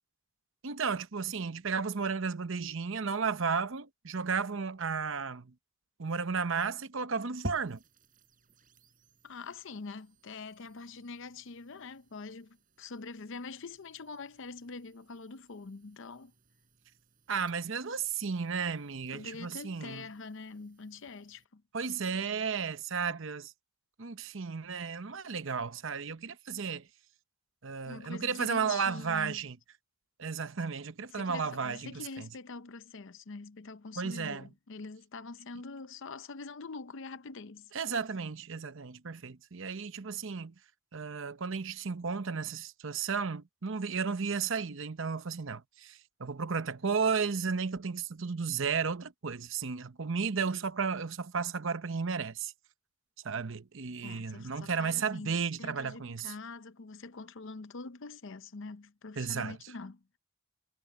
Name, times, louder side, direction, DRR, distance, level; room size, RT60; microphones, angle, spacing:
voice 1, 0.6-5.5 6.0-7.8 17.3-20.0 21.7-23.5 24.0-26.9 27.6-29.6 30.2-32.3 34.0-34.5 37.7-40.5 40.9-52.5 53.2-56.3 59.2-59.6, right 5 dB, 60° right, 0.9 m, -33 dB
sound 1, 7.4-21.4, equal, 40° right, 6.3 m, -52 dB
voice 2, 9.2-16.3 19.1-21.6 22.0-22.3 27.9-29.5 31.1-37.7 54.0-60.0, left 4 dB, 60° left, 0.7 m, -45 dB
head